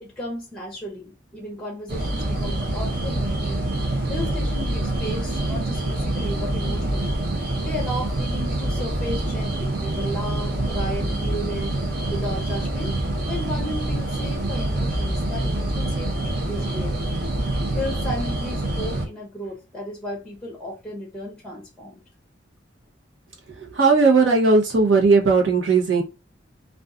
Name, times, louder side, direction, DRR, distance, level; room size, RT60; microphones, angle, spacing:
voice 1, 0.0-3.6 4.1-7.2 7.6-11.8 12.1-13.0 13.3-17.0 17.7-22.0, equal, 5° left, 0.6 m, -34 dB
sound 1, 1.9-19.1, right 1 dB, 55° right, 0.7 m, -26 dB
voice 2, 23.8-26.0, right 4 dB, 85° right, 0.9 m, -17 dB
2.6 x 2.3 x 2.3 m
head